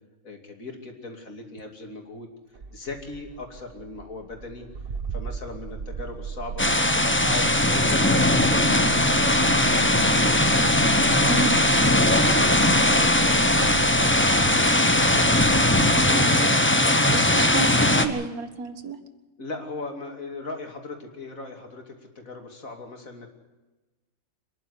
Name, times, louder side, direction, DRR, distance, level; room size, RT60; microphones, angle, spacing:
voice 1, 0.2-2.3 2.7-4.7 5.1-10.4 10.8-12.1 12.7-14.9 19.4-23.3, left 3 dB, 70° left, 3 dB, 3.2 m, -38 dB
Engine starting, 2.5-16.7, right 9 dB, 45° right, 1.1 m, -36 dB
sound 1, 6.6-18.1, left 1 dB, 10° left, 1.0 m, -20 dB
voice 2, 16.0-16.6 17.1-19.0, right 4 dB, 85° right, 9 dB, 2.1 m, -31 dB
26.0 x 11.0 x 9.8 m, 1.2 s
omnidirectional pair, 1.5 m